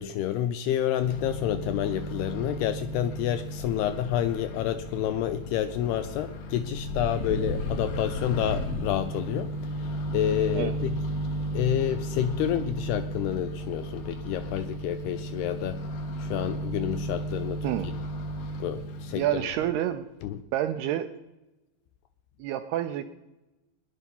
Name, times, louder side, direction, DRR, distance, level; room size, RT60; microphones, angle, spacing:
voice 1, 0.0-9.5 9.8-11.0 11.5-15.8 16.2-17.6 18.6-19.5 20.2-20.4, left 11 dB, 80° left, 11 dB, 2.4 m, -29 dB
Microwave oven, 1.0-19.3, equal, 60° left, 2.7 m, -34 dB
voice 2, 19.2-20.1 20.5-21.1 22.4-23.1, right 12 dB, 80° right, 8 dB, 2.4 m, -28 dB
19.0 x 10.5 x 5.4 m, 1.0 s
omnidirectional pair, 5.1 m